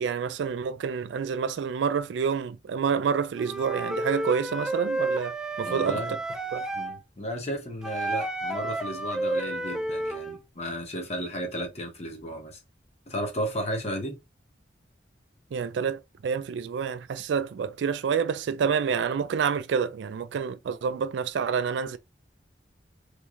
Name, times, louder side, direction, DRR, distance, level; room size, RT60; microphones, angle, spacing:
voice 1, 0.0-6.0 6.5-6.6 15.5-22.0, right 6 dB, 80° right, 0.3 m, -28 dB
Wind instrument woodwind instrument, 3.3-7.0 7.8-10.4, right 2 dB, 5° right, 0.3 m, -31 dB
voice 2, 5.6-6.2 6.7-12.6 13.1-14.2, equal, 35° left, 0.9 m, -34 dB
3.2 x 3.0 x 2.4 m
head